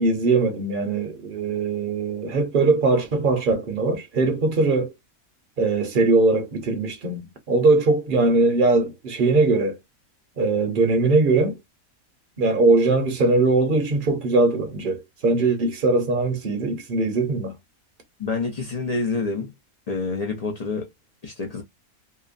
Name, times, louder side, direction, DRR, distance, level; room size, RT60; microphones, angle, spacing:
voice 1, 0.0-4.9 5.6-9.8 10.4-11.6 12.4-17.5, right 3 dB, 45° right, 0.8 m, -21 dB
voice 2, 18.2-19.5 19.9-20.9 21.2-21.6, left 3 dB, 50° left, 0.4 m, -27 dB
2.9 x 2.1 x 2.4 m
omnidirectional pair, 1.5 m